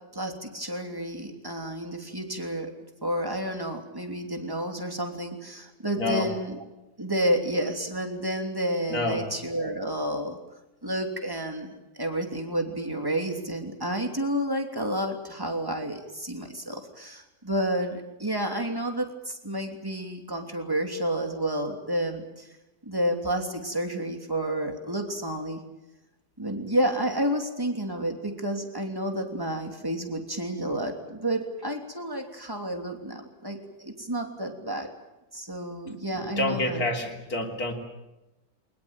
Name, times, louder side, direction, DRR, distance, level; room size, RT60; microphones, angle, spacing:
voice 1, 0.0-2.7 3.0-6.6 7.0-10.4 10.8-22.5 22.8-25.6 26.4-34.9 35.3-36.8, right 1 dB, 15° right, 4 dB, 3.1 m, -30 dB
voice 2, 5.9-6.3 8.9-9.3 36.1-37.7, left 2 dB, 70° left, 3 dB, 3.5 m, -28 dB
23.0 x 20.5 x 9.0 m, 0.98 s
omnidirectional pair, 1.7 m